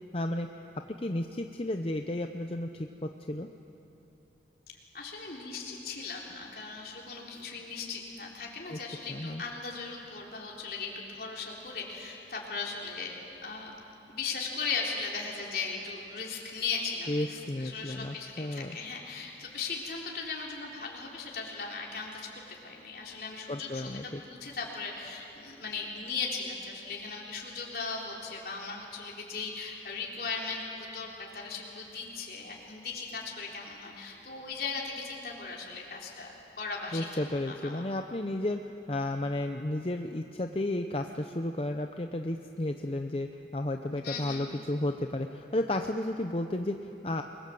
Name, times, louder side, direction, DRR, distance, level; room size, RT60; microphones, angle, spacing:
voice 1, 0.1-0.5 1.0-3.5 8.7-8.8 9.1-9.4 17.1-18.8 23.5-24.2 36.9-38.6 38.9-47.2, left 1 dB, 35° left, 5 dB, 0.7 m, -33 dB
voice 2, 4.9-13.7 14.1-37.9 43.9-44.5, left 4 dB, 60° left, -2 dB, 3.7 m, -38 dB
28.5 x 21.5 x 7.7 m, 2.9 s
head